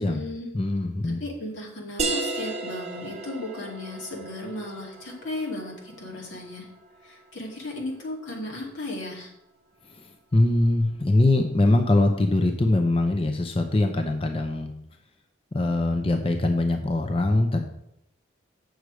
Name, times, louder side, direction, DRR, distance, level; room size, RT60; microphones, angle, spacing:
voice 1, 0.0-0.5 1.0-6.7 7.0-9.3, left 1 dB, 90° left, -2 dB, 2.5 m, -35 dB
voice 2, 0.5-1.2 10.3-14.7 15.5-17.6, left 2 dB, 30° left, 5 dB, 0.6 m, -22 dB
sound 1, 2.0-7.3, right 3 dB, 35° right, 0.9 m, -34 dB
8.1 x 6.3 x 4.8 m, 0.77 s
head